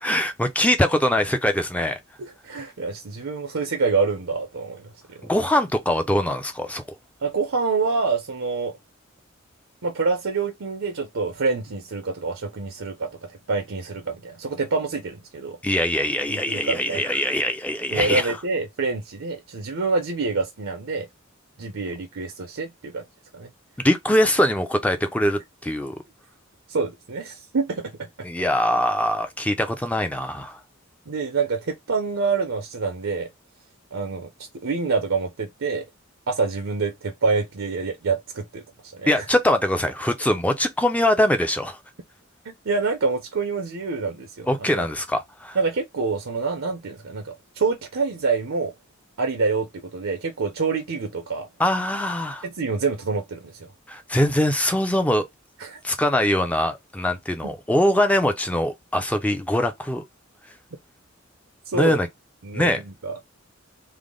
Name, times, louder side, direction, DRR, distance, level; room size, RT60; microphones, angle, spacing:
voice 1, 0.0-2.0 5.2-6.8 15.6-18.4 23.8-26.0 28.2-30.6 39.1-41.8 44.5-45.6 51.6-52.4 53.9-55.3 55.8-60.0 61.7-62.1 62.5-62.8, left 1 dB, 5° left, 0.5 m, -22 dB
voice 2, 2.2-5.2 7.2-8.7 9.8-13.1 13.5-15.6 16.3-17.2 17.9-21.1 21.6-23.0 23.3-23.5 26.7-27.9 31.1-33.3 33.9-34.3 34.6-35.8 36.3-38.6 39.0-39.2 42.4-44.5 44.7-44.9 45.5-48.7 49.2-51.5 52.4-53.7 55.6-55.8 57.4-57.5 61.7-62.0 62.4-63.1, right 4 dB, 75° right, 0.6 m, -26 dB
3.4 x 2.0 x 3.7 m
head